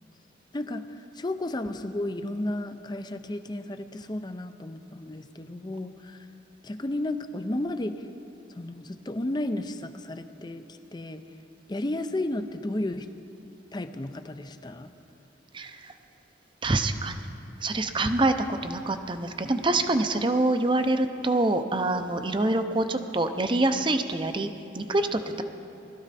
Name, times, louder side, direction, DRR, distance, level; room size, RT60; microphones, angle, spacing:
voice 1, 0.5-6.3 6.6-8.1 8.5-11.2 11.7-13.1 13.7-14.9, left 1 dB, 20° left, 10 dB, 0.5 m, -33 dB
voice 2, 15.5-15.9 16.6-17.2 17.6-18.3 18.6-24.5 24.7-25.4, right 2 dB, 25° right, 8 dB, 0.6 m, -25 dB
20.5 x 13.0 x 4.2 m, 2.7 s
head